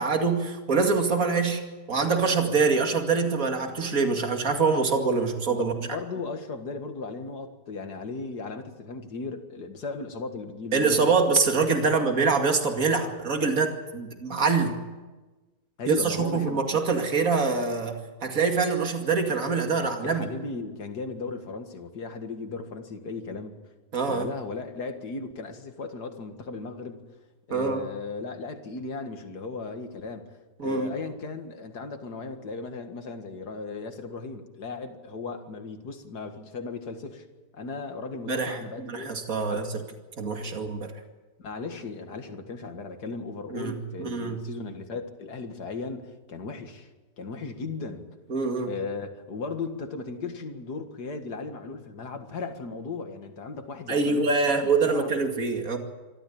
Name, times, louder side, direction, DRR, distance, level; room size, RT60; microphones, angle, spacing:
voice 1, 0.0-1.6 1.9-5.7 10.7-14.8 15.9-20.3 23.9-24.3 27.5-27.8 30.6-30.9 38.3-38.6 38.9-39.7 40.2-40.9 43.5-44.4 48.3-48.7 53.9-55.8, right 4 dB, 55° right, 4 dB, 2.7 m, -25 dB
voice 2, 5.5-11.1 11.8-12.1 15.8-16.6 19.8-23.5 24.1-27.1 27.5-30.3 30.6-37.2 37.5-39.2 39.5-39.7 41.4-46.9 47.2-48.1 48.7-54.3 54.6-55.1, left 4 dB, 70° left, 6 dB, 2.4 m, -36 dB
25.5 x 13.5 x 8.7 m, 1.2 s
omnidirectional pair, 1.8 m